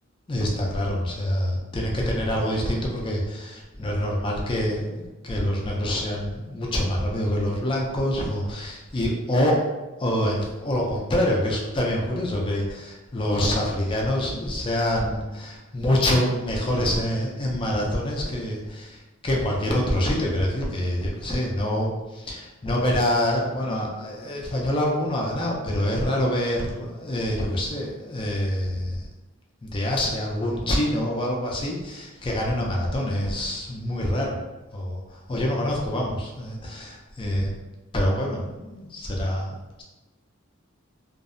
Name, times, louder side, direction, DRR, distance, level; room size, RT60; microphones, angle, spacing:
voice 1, 0.3-9.6 10.0-29.1 29.6-34.4 34.7-35.0 35.3-37.5 37.9-39.8, left 1 dB, 25° left, -1 dB, 0.4 m, -26 dB
2.5 x 2.0 x 2.4 m, 1.1 s
head